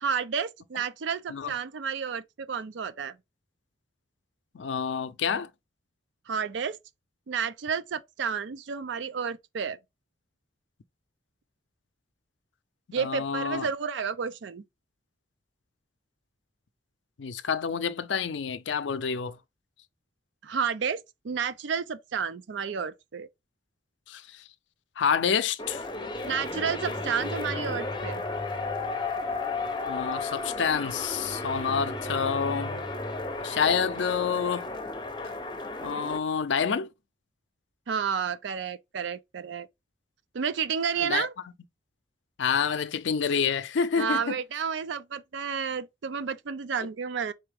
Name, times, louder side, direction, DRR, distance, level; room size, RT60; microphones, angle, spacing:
voice 1, 0.0-3.2 6.3-6.8 7.3-9.8 12.9-14.6 20.4-23.3 26.2-28.2 37.9-39.7 40.3-41.3 44.0-47.3, right 6 dB, 80° right, 0.4 m, -31 dB
voice 2, 4.5-5.5 13.0-13.7 17.2-19.4 24.1-24.4 25.0-25.8 29.9-32.8 33.4-34.7 35.8-36.9 41.0-41.3 42.4-44.4, left 6 dB, 80° left, 0.5 m, -28 dB
sound 1, 25.6-36.2, left 3 dB, 25° left, 0.8 m, -33 dB
4.3 x 3.4 x 3.3 m
head